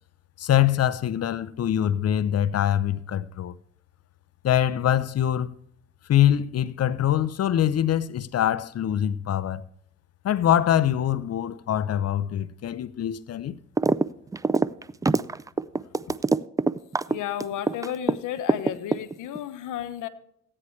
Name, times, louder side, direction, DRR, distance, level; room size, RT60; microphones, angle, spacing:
voice 1, 0.4-3.5 4.4-5.5 6.1-9.6 10.2-13.5, left 11 dB, 55° left, 0.7 m, -24 dB
sound 1, 13.8-14.1 14.3-18.1 18.5-19.4, right 3 dB, 10° right, 0.4 m, -23 dB
voice 2, 17.1-20.1, left 10 dB, 85° left, 1.0 m, -32 dB
15.0 x 9.8 x 3.2 m
cardioid pair, 90°, 30 cm